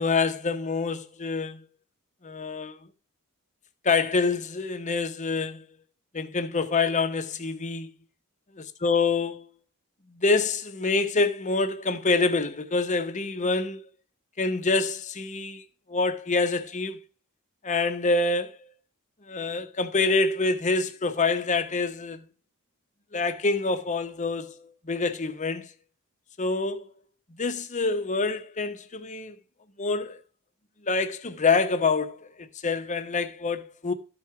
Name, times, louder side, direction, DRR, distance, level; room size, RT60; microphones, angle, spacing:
voice 1, 0.0-1.6 2.2-2.8 3.8-5.7 6.1-7.9 8.8-9.5 10.1-13.9 14.4-15.6 15.9-17.0 17.6-18.6 19.3-22.2 23.1-25.7 26.4-26.9 27.4-29.4 29.8-30.2 30.8-33.9, left 3 dB, 35° left, 0.9 m, -26 dB
13.0 x 4.7 x 5.8 m
head